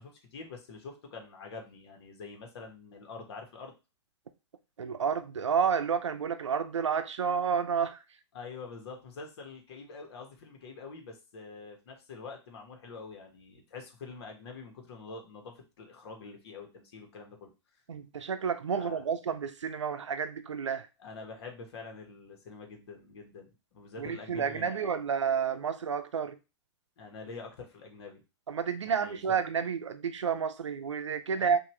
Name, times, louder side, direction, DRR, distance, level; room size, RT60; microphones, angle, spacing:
voice 1, 0.0-3.7 8.3-17.5 18.7-19.0 21.0-25.0 27.0-28.2 28.9-29.2 31.3-31.5, left 4 dB, 60° left, 1.5 m, -46 dB
voice 2, 4.8-8.0 17.9-20.9 24.0-26.4 28.5-31.6, right 6 dB, 80° right, 0.6 m, -30 dB
5.7 x 2.7 x 3.2 m
figure-of-eight pair, 110°, 15 cm